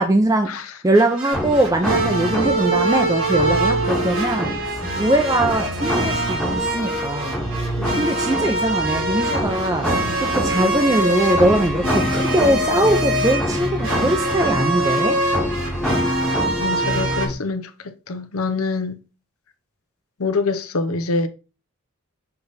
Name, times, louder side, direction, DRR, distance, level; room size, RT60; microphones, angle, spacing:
voice 1, 0.0-0.5 0.8-4.5 5.0-7.4 8.0-15.2, right 1 dB, 15° right, 0.5 m, -21 dB
sound 1, 0.9-17.3, right 2 dB, 65° right, 1.6 m, -24 dB
sound 2, 1.3-17.3, equal, 5° left, 1.0 m, -26 dB
voice 2, 7.8-8.1 16.6-17.7 18.1-19.0 20.2-21.3, left 3 dB, 85° left, 0.8 m, -25 dB
6.8 x 3.4 x 4.0 m
head